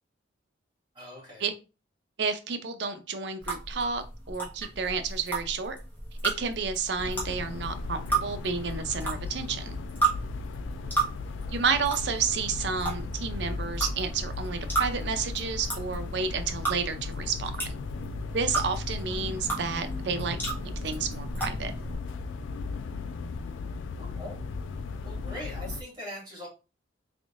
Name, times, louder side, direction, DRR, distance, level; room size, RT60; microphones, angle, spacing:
voice 1, 0.9-1.5 10.7-11.0 24.0-24.4 25.0-26.5, equal, 25° right, 2.1 m, -41 dB
voice 2, 2.2-5.8 6.2-9.8 11.5-17.8 18.3-20.4 20.8-21.7, right 5 dB, 60° right, 0.5 m, -31 dB
sound 1, 3.4-21.9, right 3 dB, 10° left, 1.1 m, -34 dB
sound 2, 7.0-25.8, left 4 dB, 80° left, 0.3 m, -37 dB
3.5 x 3.5 x 2.5 m
head